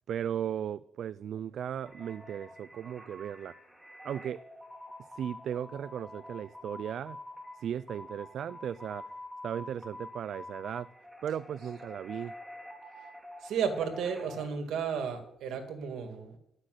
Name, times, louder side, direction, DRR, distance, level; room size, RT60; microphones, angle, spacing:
voice 1, 0.1-3.5 4.0-4.4 5.1-7.2 7.5-9.1 9.4-10.9 11.2-12.3, right 9 dB, 65° right, 0.3 m, -36 dB
sound 1, 1.8-14.5, left 1 dB, ahead, 2.2 m, -47 dB
voice 2, 13.4-16.4, right 7 dB, 85° right, 2.2 m, -33 dB
12.0 x 6.4 x 7.8 m
cardioid pair, 120°, 0 cm